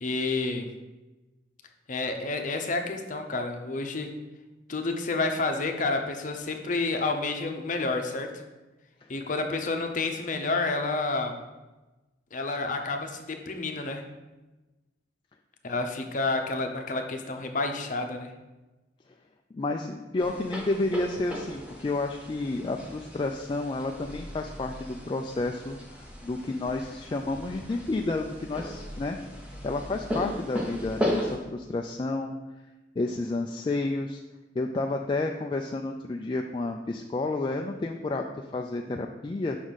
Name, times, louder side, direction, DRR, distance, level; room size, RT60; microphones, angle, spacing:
voice 1, 0.0-0.7 1.9-4.1 4.7-8.3 9.1-11.4 12.3-14.0 15.6-18.3, left 3 dB, 45° left, 4 dB, 0.7 m, -29 dB
voice 2, 19.5-25.8 26.2-29.2 29.6-32.4 33.0-34.2 34.6-39.6, left 2 dB, 25° left, 2 dB, 0.3 m, -30 dB
sound 1, 20.2-31.4, equal, 5° right, 1.0 m, -36 dB
6.0 x 4.0 x 6.2 m, 1.1 s
head